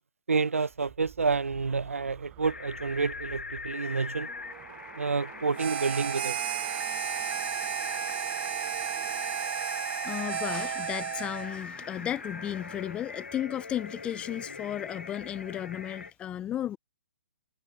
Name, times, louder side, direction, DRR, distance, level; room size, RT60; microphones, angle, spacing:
voice 1, 0.3-4.3 5.0-6.4, right 4 dB, 80° right, 0.6 m, -29 dB
sound 1, 0.7-13.3 13.6-14.1, right 19 dB, 25° right, 1.0 m, -50 dB
sound 2, 2.4-16.1, left 4 dB, 75° left, 5.3 m, -41 dB
Harmonica, 5.6-11.6, right 10 dB, 50° right, 1.0 m, -33 dB
voice 2, 10.0-16.8, left 11 dB, 15° left, 0.4 m, -34 dB
figure-of-eight pair, 130°, 7 cm